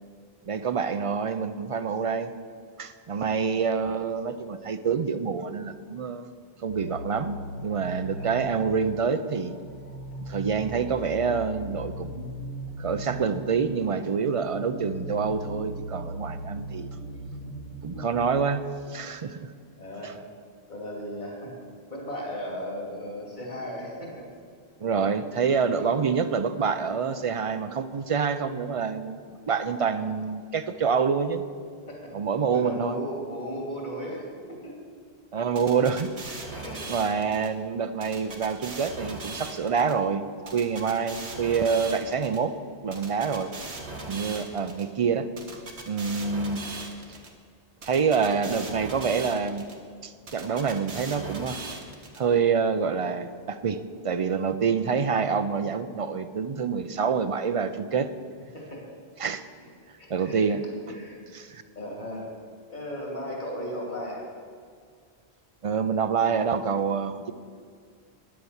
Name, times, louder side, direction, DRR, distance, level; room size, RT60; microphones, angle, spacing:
voice 1, 0.5-2.3 2.8-6.3 6.6-9.5 10.2-12.3 12.8-16.9 17.8-18.6 18.9-19.5 20.0-20.1 24.8-31.4 32.1-33.0 35.3-36.1 36.9-42.5 42.8-43.5 44.1-45.6 45.9-46.6 47.8-49.6 50.0-51.6 52.2-53.8 54.0-58.1 59.2-59.4 60.1-60.6 61.3-61.6 65.6-67.3, right 6 dB, 50° right, 11 dB, 0.4 m, -27 dB
voice 2, 3.1-3.5 8.1-8.4 19.8-20.2 20.7-21.5 21.9-24.3 25.7-25.9 29.8-30.0 31.9-32.1 32.5-34.7 36.2-37.0 38.2-38.4 43.3-43.6 44.4-44.7 58.5-58.9 60.0-60.6 60.9-61.2 61.7-62.3 62.7-64.3, equal, 45° left, -2 dB, 2.8 m, -36 dB
sound 1, 6.7-18.4, right 1 dB, 60° left, 1.2 m, -38 dB
sound 2, 35.6-37.5 38.0-39.9 40.5-42.4 42.9-44.8 45.4-47.3 47.8-49.7 50.3-52.2, right 3 dB, 85° right, 1.7 m, -39 dB
10.5 x 7.8 x 7.1 m, 2.1 s
omnidirectional pair, 1.1 m